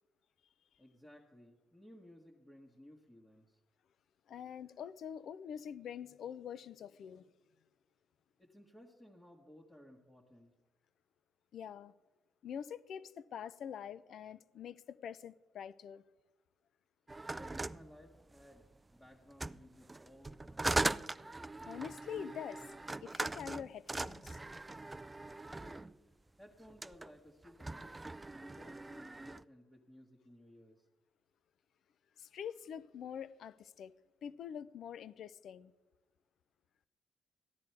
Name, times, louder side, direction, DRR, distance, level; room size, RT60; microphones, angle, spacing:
voice 1, 0.8-3.6 8.4-10.5 17.3-20.8 25.5-25.8 26.4-28.1 28.3-30.9, left 1 dB, 15° left, 1.6 m, -58 dB
voice 2, 4.3-7.3 11.5-11.9 12.4-16.0 21.7-22.7 23.0-24.4 32.2-33.9 34.2-35.7, left 8 dB, 65° left, 0.5 m, -45 dB
sound 1, 17.1-18.7 19.3-25.9 26.7-27.1 27.4-29.4, right 2 dB, 20° right, 0.3 m, -40 dB
14.5 x 10.5 x 4.6 m
cardioid pair, 90°, 0 cm